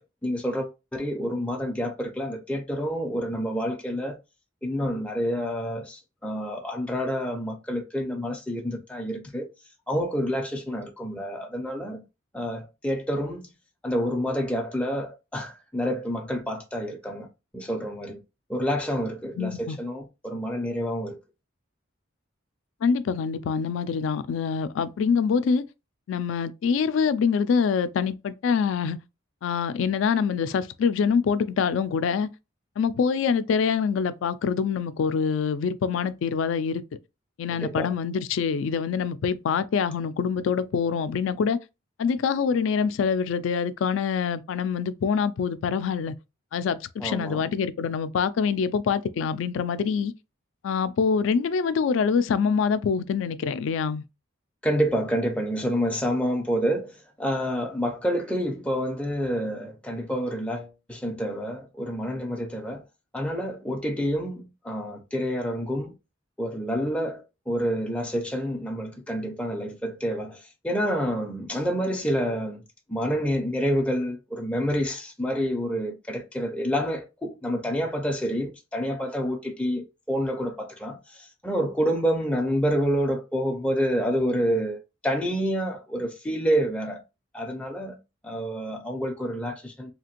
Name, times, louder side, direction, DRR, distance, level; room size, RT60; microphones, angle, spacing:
voice 1, 0.0-4.2 4.6-9.5 9.9-12.0 12.3-13.5 13.8-17.3 17.5-18.2 18.5-21.2 37.6-37.9 47.0-47.4 54.6-62.8 63.1-65.9 66.4-72.6 72.9-87.0 87.3-88.0 88.2-89.9, equal, 5° left, 0.4 m, -28 dB
voice 2, 19.4-19.8 22.8-25.6 26.1-29.0 29.4-32.3 32.8-36.8 37.4-41.6 42.0-46.1 46.5-50.1 50.6-54.0, left 6 dB, 75° left, 0.3 m, -25 dB
2.8 x 2.5 x 2.9 m
head